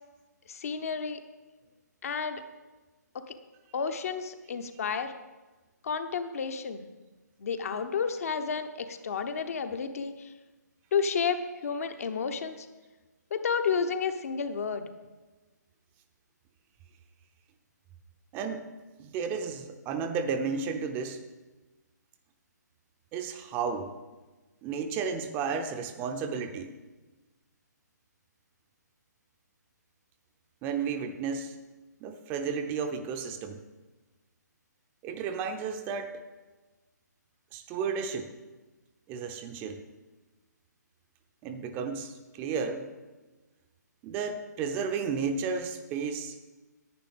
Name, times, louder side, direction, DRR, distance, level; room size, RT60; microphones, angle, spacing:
voice 1, 0.5-1.2 2.0-2.4 3.3-3.4 3.7-5.1 5.8-6.8 7.4-10.3 10.9-12.7 13.3-14.9, left 6 dB, 50° left, 8 dB, 1.0 m, -31 dB
voice 2, 18.3-18.7 19.0-21.2 23.1-23.9 24.6-26.7 30.6-31.6 32.0-33.6 35.0-36.2 37.5-38.3 39.1-39.8 41.4-42.9 44.0-46.5, right 5 dB, 20° right, 7 dB, 0.6 m, -33 dB
10.5 x 9.1 x 5.3 m, 1.2 s
figure-of-eight pair, 140°, 10 cm